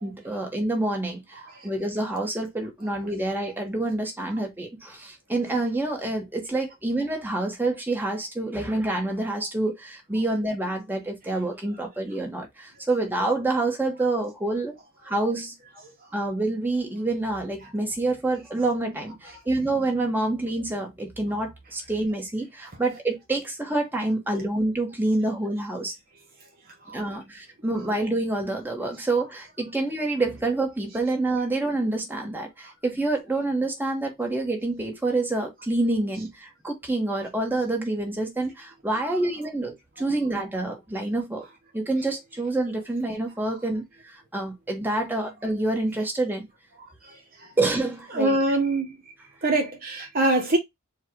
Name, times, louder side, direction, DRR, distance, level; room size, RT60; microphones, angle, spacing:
voice 1, 0.0-14.8 15.0-15.5 16.1-25.9 26.9-41.4 41.7-46.5 47.6-48.6, right 2 dB, 10° right, 1.4 m, -27 dB
voice 2, 48.1-49.0 49.4-50.6, right 2 dB, 40° right, 1.0 m, -24 dB
4.5 x 2.4 x 4.5 m
head